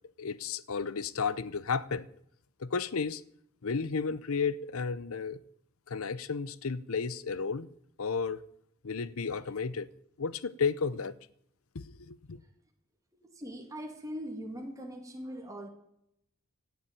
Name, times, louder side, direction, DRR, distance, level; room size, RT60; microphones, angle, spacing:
voice 1, 0.2-2.1 2.6-3.2 3.6-5.4 5.9-7.7 8.0-8.4 8.8-9.9 10.2-11.1 11.7-12.4, left 5 dB, 75° left, 0.7 m, -33 dB
voice 2, 13.2-15.7, equal, 15° right, 2.3 m, -41 dB
16.5 x 7.2 x 8.6 m
head